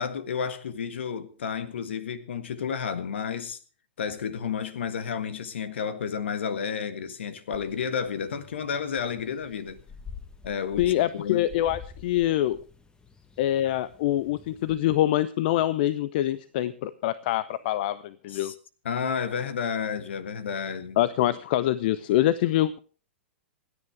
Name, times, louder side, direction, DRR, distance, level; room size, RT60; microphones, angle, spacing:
voice 1, 0.0-3.6 4.0-9.8 10.4-11.5 18.3-18.5 18.8-21.0, left 7 dB, 65° left, 1.7 m, -31 dB
sound 1, 7.5-14.7, left 5 dB, 10° left, 1.4 m, -48 dB
voice 2, 10.8-12.6 13.4-18.5 21.0-22.8, left 13 dB, 50° left, 0.7 m, -25 dB
27.0 x 10.0 x 3.4 m
figure-of-eight pair, 105°, 7 cm